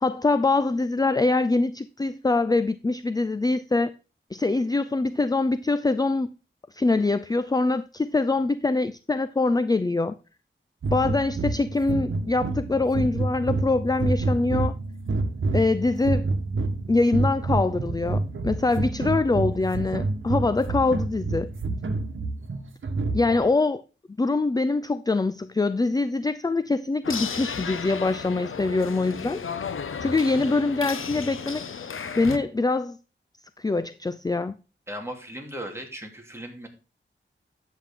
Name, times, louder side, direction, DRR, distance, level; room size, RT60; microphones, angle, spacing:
voice 1, 0.0-3.9 4.3-6.3 6.7-10.2 10.9-14.7 15.5-16.3 16.9-21.5 23.1-23.8 24.2-29.4 30.0-31.6 32.2-33.0 33.6-34.6, left 3 dB, 20° left, 0.4 m, -24 dB
sound 1, 10.8-23.5, right 3 dB, 75° right, 1.4 m, -28 dB
sound 2, 27.0-32.4, left 6 dB, 85° left, 0.9 m, -33 dB
voice 2, 34.9-36.7, right 1 dB, 10° right, 2.6 m, -37 dB
10.0 x 8.0 x 3.8 m
wide cardioid pair, 100°, 20 cm